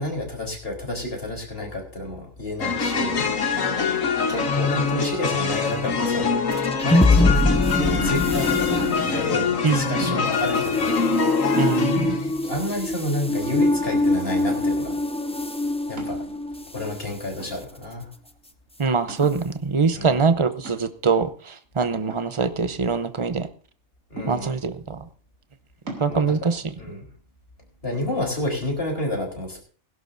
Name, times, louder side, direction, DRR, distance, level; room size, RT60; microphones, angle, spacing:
voice 1, 0.0-3.3 3.8-6.4 6.8-7.4 7.8-11.0 12.5-15.0 15.9-16.2 16.7-18.1 19.9-20.2 24.1-24.6 26.1-27.0 27.8-29.6, left 1 dB, 50° left, 1 dB, 4.2 m, -30 dB
sound 1, 2.6-12.8, left 5 dB, 85° left, 1.7 m, -24 dB
sound 2, 6.5-17.0, left 2 dB, 10° left, 0.4 m, -24 dB
sound 3, 8.8-9.2 10.2-10.7 11.2-11.3 11.6-12.2 12.8-12.9 13.3-14.0 14.5-14.9 16.0-16.7 17.4-18.0 18.4-18.5 19.1-19.5 20.6-21.1 22.1-23.0 24.2-24.8 25.9-26.1, right 2 dB, 85° right, 3.5 m, -40 dB
voice 2, 9.6-10.2 11.6-12.2 18.8-23.5 24.3-25.1 25.9-26.7, right 5 dB, 25° right, 10 dB, 0.8 m, -23 dB
21.0 x 11.5 x 2.7 m, 0.40 s
omnidirectional pair, 1.3 m